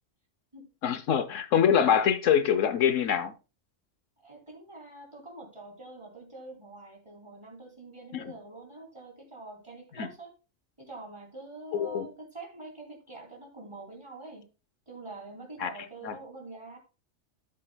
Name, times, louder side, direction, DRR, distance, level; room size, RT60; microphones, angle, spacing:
voice 1, 0.8-3.3 8.1-8.2 11.7-12.1 15.6-15.7 16.0-16.1, left 8 dB, 75° left, 1.1 m, -24 dB
voice 2, 4.2-10.3 10.8-14.5 14.9-16.8, right 2 dB, 25° right, 2.9 m, -45 dB
12.0 x 7.6 x 2.2 m
omnidirectional pair, 1.3 m